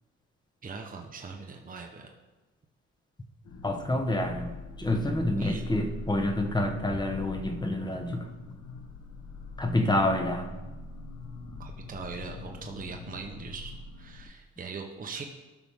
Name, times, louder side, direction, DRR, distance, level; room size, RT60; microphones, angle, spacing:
voice 1, 0.6-2.1 5.4-5.6 11.6-15.2, right 5 dB, 30° right, 2 dB, 0.9 m, -41 dB
sound 1, 3.4-14.3, left 2 dB, 70° left, 1.3 m, -43 dB
voice 2, 3.6-8.3 9.6-10.5, left 1 dB, 15° left, 5 dB, 1.1 m, -28 dB
13.0 x 6.0 x 3.6 m, 1.2 s
cardioid pair, 90°, 30 cm